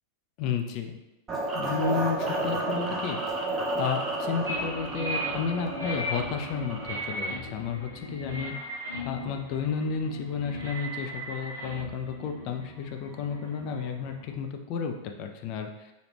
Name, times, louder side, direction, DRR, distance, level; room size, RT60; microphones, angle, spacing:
voice 1, 0.4-0.9 1.5-3.2 3.8-8.5 9.1-15.9, left 6 dB, 40° left, 4 dB, 0.4 m, -32 dB
sound 1, 1.3-7.2, right 2 dB, 20° right, 0.6 m, -31 dB
sound 2, 4.5-14.3, equal, 75° right, 0.5 m, -37 dB
3.1 x 2.4 x 3.3 m, 0.99 s
figure-of-eight pair, 90°, 0 cm